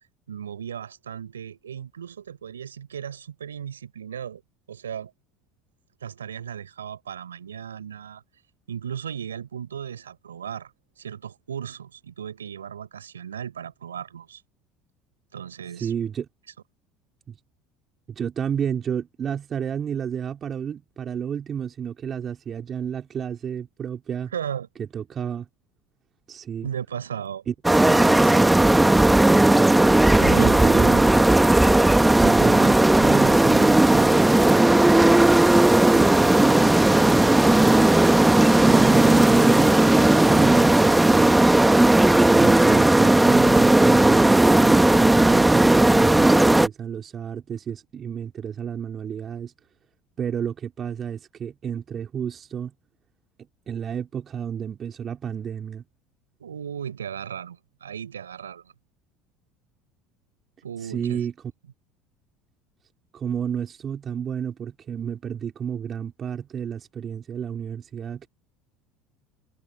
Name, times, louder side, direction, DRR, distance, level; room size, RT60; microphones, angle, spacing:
voice 1, 0.3-4.4 4.7-5.1 6.0-8.2 8.7-10.7 11.0-14.4 15.3-15.9 24.3-24.7 26.6-27.4 28.0-28.5 30.2-30.6 56.4-58.6 60.6-61.2, right 8 dB, 85° right, 5.0 m, -36 dB
voice 2, 15.8-16.3 17.3-17.4 18.1-24.3 24.8-25.5 26.3-26.7 27.5-27.6 30.4-31.0 32.2-34.9 35.9-37.9 38.6-41.3 42.3-49.5 50.2-52.7 53.7-55.8 60.8-61.3 63.1-68.3, right 8 dB, 40° right, 3.1 m, -30 dB
sound 1, 27.6-46.7, right 1 dB, 10° right, 1.4 m, -16 dB
hypercardioid pair, 70°, 0 cm